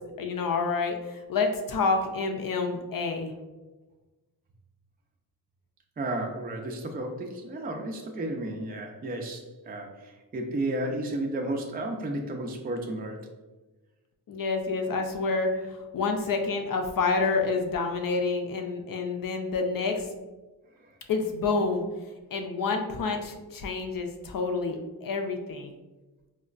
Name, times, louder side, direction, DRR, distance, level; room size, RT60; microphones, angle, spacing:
voice 1, 0.2-3.3 14.3-20.1 21.1-21.8 22.3-25.7, left 4 dB, 55° left, 4 dB, 0.6 m, -28 dB
voice 2, 6.0-13.3, right 1 dB, 25° right, 2 dB, 0.5 m, -33 dB
4.2 x 2.1 x 2.4 m, 1.2 s
cardioid pair, 55°, 40 cm